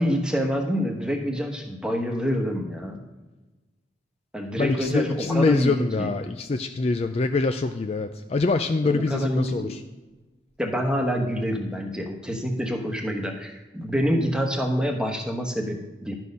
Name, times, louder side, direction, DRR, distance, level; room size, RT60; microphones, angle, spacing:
voice 1, 0.0-3.0 4.3-6.1 8.8-9.7 10.6-16.1, equal, 5° right, 2 dB, 1.1 m, -27 dB
voice 2, 4.6-9.8, left 3 dB, 35° left, 7 dB, 0.4 m, -24 dB
11.5 x 6.3 x 5.4 m, 1.2 s
head